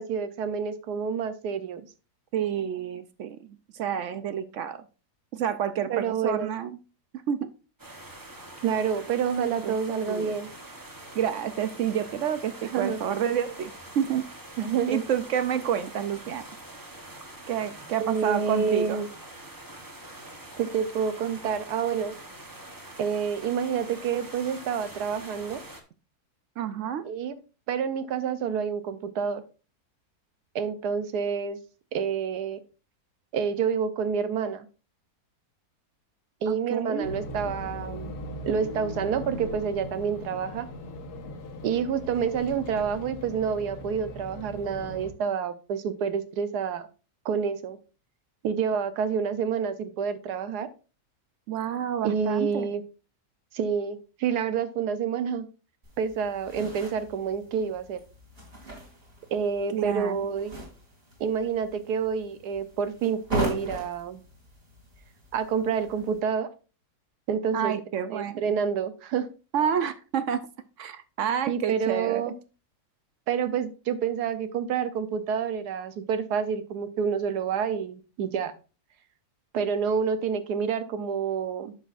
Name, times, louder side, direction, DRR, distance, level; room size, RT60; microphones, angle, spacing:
voice 1, 0.0-1.8 5.9-6.5 8.6-10.5 12.7-13.0 14.6-15.0 18.0-19.1 20.6-22.1 23.0-25.6 27.0-27.4 27.7-29.4 30.5-31.6 31.9-32.6 33.3-34.7 36.4-38.1 38.5-40.7 41.6-46.9 47.2-47.8 48.4-50.7 52.0-52.8 53.5-55.4 56.0-58.0 59.3-60.5 61.2-64.2 65.3-66.5 67.3-67.7 68.1-69.3 71.5-72.3 73.3-78.5 79.5-81.7, right 6 dB, 85° right, 12 dB, 1.3 m, -28 dB
voice 2, 2.3-3.4 3.7-4.8 5.3-6.8 7.3-7.5 9.4-10.4 11.1-14.2 14.9-16.4 17.5-19.0 26.6-27.0 36.5-37.1 51.5-52.7 59.7-60.2 67.5-68.4 69.5-70.4 70.8-72.2, right 9 dB, 65° right, 12 dB, 0.8 m, -29 dB
sound 1, 7.8-25.8, right 1 dB, 15° right, 0.8 m, -44 dB
sound 2, 37.0-45.1, left 1 dB, 75° left, 1.7 m, -39 dB
sound 3, 55.8-66.2, right 1 dB, 35° right, 3.1 m, -39 dB
10.0 x 6.5 x 2.5 m, 0.33 s
omnidirectional pair, 1.7 m